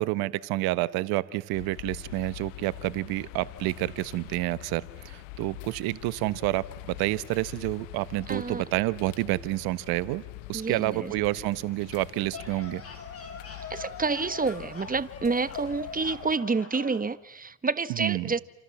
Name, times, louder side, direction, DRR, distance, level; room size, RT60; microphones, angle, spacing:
voice 1, 0.0-10.2 10.5-12.8 18.0-18.3, right 18 dB, 70° right, 16 dB, 1.2 m, -29 dB
sound 1, 1.5-16.4, left 18 dB, 85° left, 1.0 m, -45 dB
voice 2, 8.3-8.6 10.5-11.1 13.7-18.4, right 4 dB, 20° right, 14 dB, 1.4 m, -29 dB
sound 2, 12.3-17.1, left 4 dB, 40° left, 7.7 m, -42 dB
29.5 x 28.0 x 7.3 m, 0.91 s
hypercardioid pair, 65°, 37 cm